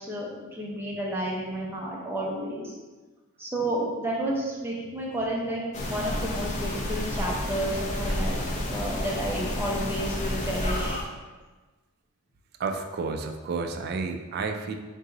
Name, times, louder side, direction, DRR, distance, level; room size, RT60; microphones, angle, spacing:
voice 1, 0.0-2.7 3.4-11.0, right 1 dB, 10° right, -4 dB, 0.7 m, -31 dB
sound 1, 5.7-11.1, left 1 dB, 35° left, 0.5 m, -30 dB
voice 2, 12.6-14.7, right 4 dB, 45° right, 6 dB, 0.3 m, -31 dB
3.7 x 2.7 x 3.9 m, 1.3 s
head